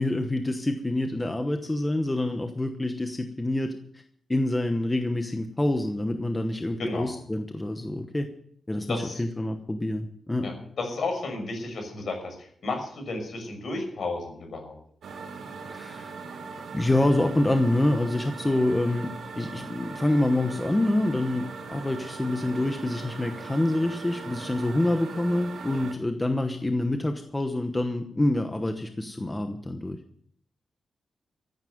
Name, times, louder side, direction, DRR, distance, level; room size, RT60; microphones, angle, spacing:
voice 1, 0.0-3.7 4.3-8.3 8.7-10.5 15.7-16.1 16.7-19.1 19.4-30.0, left 1 dB, 15° left, 6 dB, 1.0 m, -26 dB
voice 2, 6.8-7.1 8.9-9.2 10.4-14.7, left 3 dB, 55° left, 4 dB, 6.0 m, -33 dB
sound 1, 15.0-25.9, right 4 dB, 75° right, 2.0 m, -40 dB
14.5 x 9.4 x 7.8 m, 0.63 s
wide cardioid pair, 160°, 0 cm